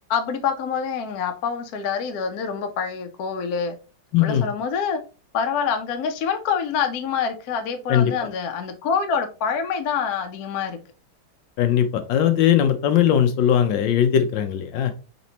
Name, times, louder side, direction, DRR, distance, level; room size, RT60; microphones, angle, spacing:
voice 1, 0.1-3.8 4.2-5.0 5.3-10.8, left 6 dB, 65° left, 1.1 m, -26 dB
voice 2, 4.1-4.5 7.9-8.1 11.6-14.9, left 9 dB, 80° left, 1.4 m, -19 dB
4.2 x 4.1 x 2.8 m
omnidirectional pair, 2.0 m